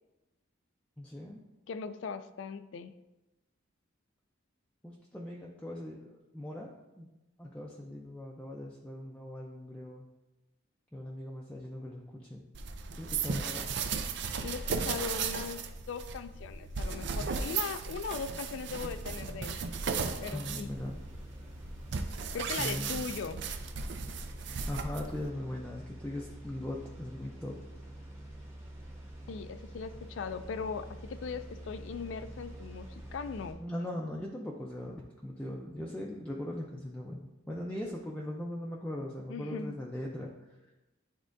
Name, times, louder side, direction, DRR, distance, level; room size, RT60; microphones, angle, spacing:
voice 1, 1.0-1.4 4.8-6.7 7.0-7.1 7.4-10.0 10.9-12.4 13.0-13.7 20.3-21.0 22.6-23.1 24.7-27.6 33.6-40.3, left 1 dB, 5° left, -3 dB, 0.5 m, -40 dB
voice 2, 1.7-2.9 14.4-19.6 20.2-20.7 22.3-23.4 29.3-33.6 39.3-39.8, left 5 dB, 70° left, 11 dB, 0.3 m, -39 dB
sound 1, 12.5-25.3, right 5 dB, 60° right, 0.5 m, -36 dB
sound 2, 18.9-33.5, right 1 dB, 15° right, 1.0 m, -47 dB
10.5 x 3.6 x 2.6 m, 1.0 s
head